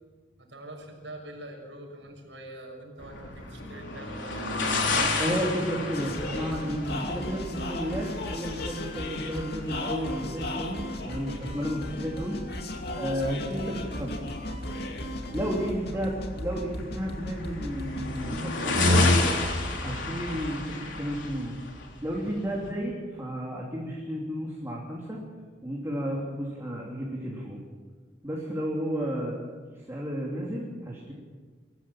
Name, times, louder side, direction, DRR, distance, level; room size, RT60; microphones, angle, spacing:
voice 1, 0.4-5.2 15.9-16.1, right 1 dB, 85° right, 1 dB, 6.4 m, -44 dB
sound 1, 3.0-22.7, left 2 dB, 90° left, 3.8 m, -31 dB
voice 2, 5.2-12.6 13.0-14.1 15.3-19.1 19.8-21.6 22.0-25.2 25.6-27.6 28.2-29.5 29.7-31.1, equal, 15° right, -4 dB, 3.2 m, -32 dB
sound 2, 5.9-18.5, left 1 dB, 60° left, 2.5 m, -36 dB
23.5 x 15.0 x 7.4 m, 1.4 s
head